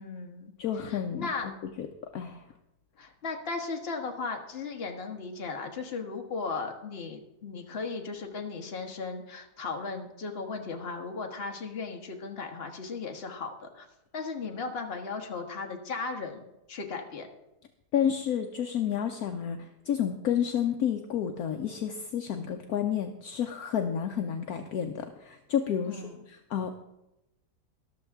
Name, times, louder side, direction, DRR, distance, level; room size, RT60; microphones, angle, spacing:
voice 1, 0.0-0.5 0.8-1.5 3.0-13.9 14.1-17.3 25.9-26.2, left 4 dB, 40° left, 3 dB, 1.4 m, -36 dB
voice 2, 0.6-1.3 1.8-1.9 2.1-2.4 17.9-26.0 26.3-26.7, left 8 dB, 65° left, 5 dB, 1.1 m, -30 dB
13.5 x 12.0 x 3.5 m, 0.90 s
omnidirectional pair, 1.8 m